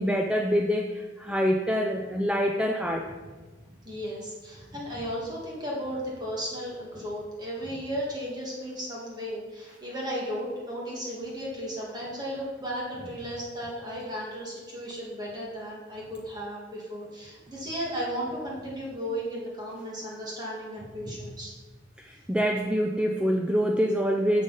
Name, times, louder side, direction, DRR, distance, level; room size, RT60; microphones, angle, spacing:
voice 1, 0.0-3.1 22.0-24.4, equal, 5° right, 2 dB, 0.4 m, -26 dB
voice 2, 3.8-21.5, equal, 25° right, -4 dB, 1.7 m, -35 dB
9.9 x 6.7 x 4.0 m, 1.3 s
head